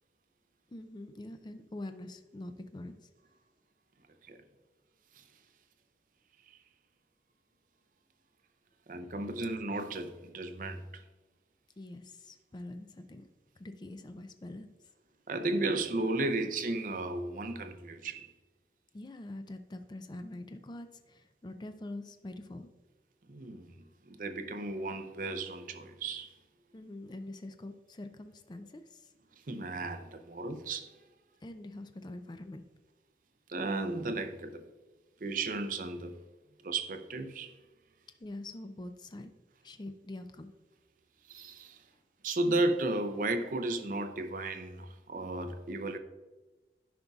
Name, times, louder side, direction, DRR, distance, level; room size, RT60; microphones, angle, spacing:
voice 1, 0.7-3.1 11.8-13.3 13.6-14.7 18.9-22.7 26.7-29.1 31.4-32.6 38.2-39.3 39.6-40.5, left 1 dB, 25° left, 0.4 m, -44 dB
voice 2, 8.9-11.0 15.3-18.3 23.3-23.7 24.1-26.3 29.5-30.9 33.5-34.6 35.2-36.2 36.6-37.5 41.3-41.8 42.2-46.0, right 2 dB, 50° right, 0.5 m, -34 dB
10.5 x 5.2 x 2.4 m
head